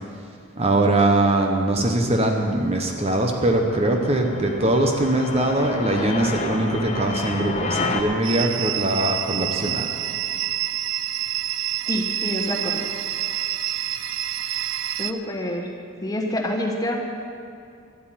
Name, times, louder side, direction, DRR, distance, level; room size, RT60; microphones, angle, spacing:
voice 1, 0.6-9.9, right 1 dB, 30° right, 3 dB, 1.0 m, -21 dB
sound 1, 2.0-8.0, left 3 dB, 35° left, 1.1 m, -31 dB
sound 2, 8.2-15.1, right 12 dB, 75° right, 0.5 m, -27 dB
voice 2, 11.9-12.8 15.0-15.7 16.0-17.0, left 1 dB, 20° left, 1 dB, 1.4 m, -27 dB
12.5 x 8.3 x 9.2 m, 2.4 s
head